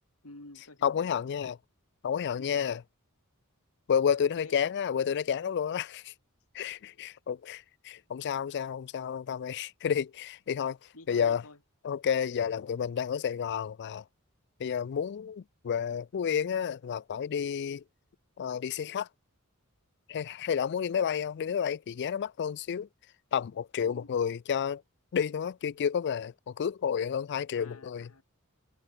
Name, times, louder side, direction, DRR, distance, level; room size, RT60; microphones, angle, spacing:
voice 1, 0.2-1.2 2.4-2.8 4.4-4.6 10.9-11.6 23.8-24.1 27.5-28.2, left 2 dB, 75° left, 3.7 m, -51 dB
voice 2, 0.8-1.6 2.0-2.8 3.9-6.1 6.5-10.8 11.1-11.4 11.8-14.0 14.6-17.8 18.4-19.1 20.1-22.9 23.3-24.8 25.1-28.1, left 7 dB, 50° left, 0.4 m, -30 dB
head